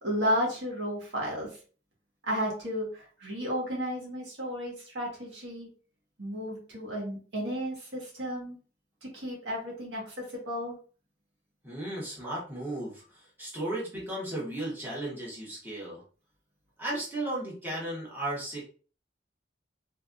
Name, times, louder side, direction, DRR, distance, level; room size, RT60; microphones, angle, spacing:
voice 1, 0.0-1.6 2.2-5.7 6.2-8.6 9.0-10.7, equal, 80° right, -2 dB, 1.5 m, -33 dB
voice 2, 11.6-16.0 16.8-18.6, right 1 dB, 10° right, -6 dB, 1.5 m, -35 dB
3.4 x 3.3 x 2.6 m, 0.39 s
head